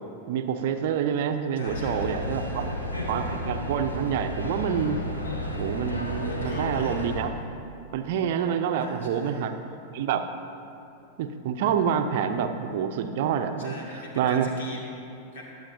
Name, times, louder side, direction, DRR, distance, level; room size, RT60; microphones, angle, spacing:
voice 1, 0.3-2.6 3.1-5.0 5.6-7.3 7.9-9.5 9.9-10.2 11.2-13.7 14.2-14.5, right 8 dB, 50° right, 7 dB, 0.6 m, -27 dB
sound 1, 1.6-7.2, left 1 dB, 80° left, 1.4 m, -32 dB
voice 2, 1.6-2.8 6.3-6.9 8.8-9.4 13.6-15.4, left 1 dB, 60° left, -2 dB, 2.3 m, -42 dB
21.5 x 7.8 x 2.7 m, 2.7 s
figure-of-eight pair, 90°, 0 cm